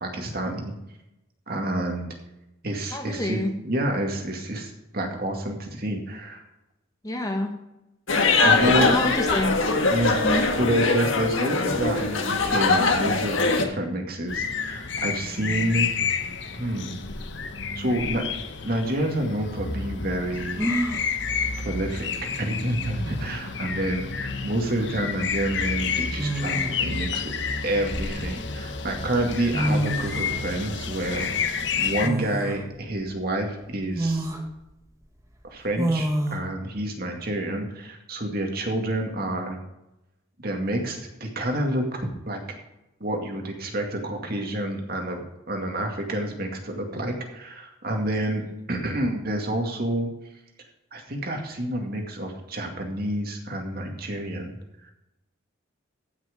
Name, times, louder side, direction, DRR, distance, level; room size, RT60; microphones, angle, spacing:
voice 1, 0.0-0.7 1.5-2.1 2.6-6.4 8.4-8.9 9.9-15.9 16.5-17.0 17.8-18.3 18.6-20.6 21.6-27.3 27.6-34.3 35.4-39.6 40.4-42.6 43.0-48.4 48.7-50.1 50.9-54.6 54.8-54.9, right 1 dB, 45° right, 2 dB, 2.2 m, -28 dB
voice 2, 2.9-3.5 7.0-7.5 8.4-9.5 10.2-10.4, left 1 dB, 15° left, 3 dB, 1.3 m, -26 dB
sound 1, 8.1-13.6, left 3 dB, 75° left, 1.5 m, -22 dB
sound 2, 14.3-32.1, left 5 dB, 60° left, 1.0 m, -30 dB
sound 3, 19.0-19.1 20.6-21.1 22.6-22.7 23.0-23.5 24.9-25.1 26.2-26.9 27.6-28.6 29.3-29.4 29.5-30.4 32.0-32.6 33.1-33.2 33.9-34.4 35.8-36.4, right 1 dB, 15° right, 1.4 m, -28 dB
15.0 x 6.2 x 5.2 m, 0.92 s
head